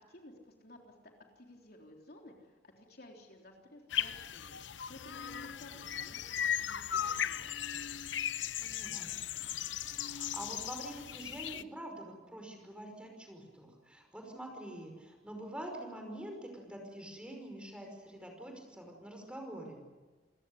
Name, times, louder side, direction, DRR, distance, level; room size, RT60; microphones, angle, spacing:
voice 1, 0.1-4.6 4.9-6.3 6.6-8.1, left 1 dB, 55° left, 1 dB, 3.7 m, -55 dB
sound 1, 3.9-11.6, left 9 dB, 90° left, 0.7 m, -37 dB
voice 2, 8.6-9.1 9.9-19.8, right 1 dB, 5° right, 2 dB, 5.4 m, -46 dB
28.5 x 16.5 x 9.9 m, 1.3 s
head